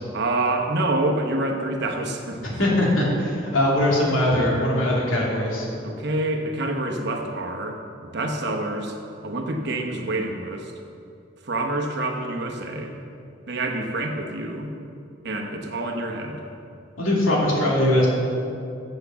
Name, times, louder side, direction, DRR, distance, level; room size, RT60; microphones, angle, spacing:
voice 1, 0.1-2.6 5.8-9.0 9.2-10.7 11.4-13.0 13.5-14.7 15.2-16.4, right 2 dB, 55° right, 2 dB, 1.0 m, -27 dB
voice 2, 2.4-5.7 17.0-18.1, left 1 dB, 80° left, -4 dB, 2.6 m, -21 dB
8.3 x 6.6 x 6.9 m, 2.6 s
head